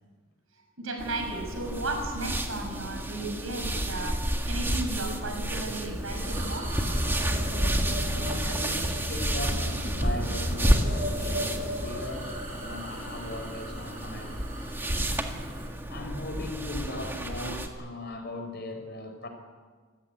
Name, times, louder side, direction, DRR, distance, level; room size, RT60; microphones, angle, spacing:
voice 1, 0.8-6.7 15.8-15.9, right 2 dB, 80° right, 6.2 m, -35 dB
sound 1, 1.0-17.7, right 1 dB, 10° right, 1.8 m, -31 dB
sound 2, 5.9-15.7, equal, 35° right, 7.6 m, -35 dB
voice 2, 8.1-14.4 15.0-15.6 15.9-19.3, left 1 dB, 50° left, 4.2 m, -39 dB
26.0 x 15.5 x 9.5 m
head